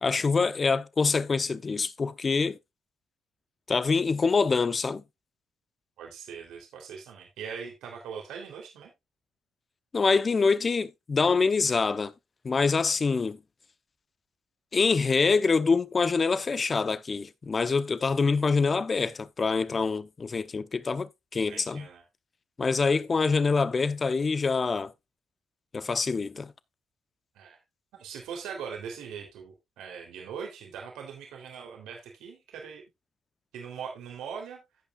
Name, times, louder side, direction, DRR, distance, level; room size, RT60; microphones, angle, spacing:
voice 1, 0.0-2.6 3.7-5.0 9.9-12.1 12.4-13.4 14.7-21.9 22.6-24.9 25.7-26.5, left 4 dB, 35° left, 0.8 m, -25 dB
voice 2, 6.0-8.9 21.5-22.0 27.3-27.6 28.0-32.8 33.5-34.6, right 6 dB, 90° right, 3.3 m, -41 dB
16.0 x 5.5 x 2.4 m
cardioid pair, 90°, 0 cm